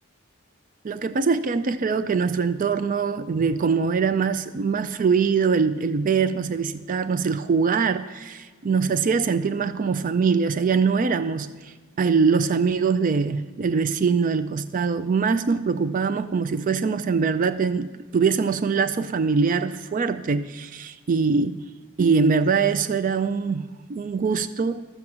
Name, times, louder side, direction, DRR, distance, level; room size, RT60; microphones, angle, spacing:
voice 1, 0.8-21.7 22.0-24.8, right 5 dB, 40° right, 0.4 m, -23 dB
13.0 x 7.8 x 5.9 m
head